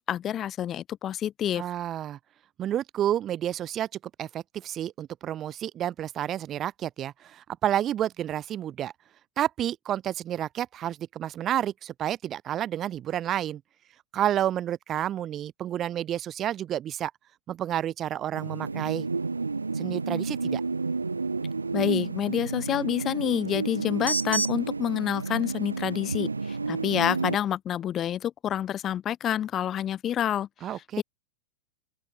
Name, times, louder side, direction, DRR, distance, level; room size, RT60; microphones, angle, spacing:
voice 1, 0.0-1.6 21.7-30.5 31.0-31.1, left 10 dB, 30° left, 3.9 m, -28 dB
voice 2, 1.5-2.2 2.6-3.9 4.2-8.9 9.4-13.6 14.1-17.1 17.5-19.1 19.7-20.6 30.6-31.0, right 11 dB, 30° right, 1.4 m, -30 dB
sound 1, 18.3-27.4, right 4 dB, 80° right, 0.7 m, -30 dB
open air
figure-of-eight pair, 90°, 0 cm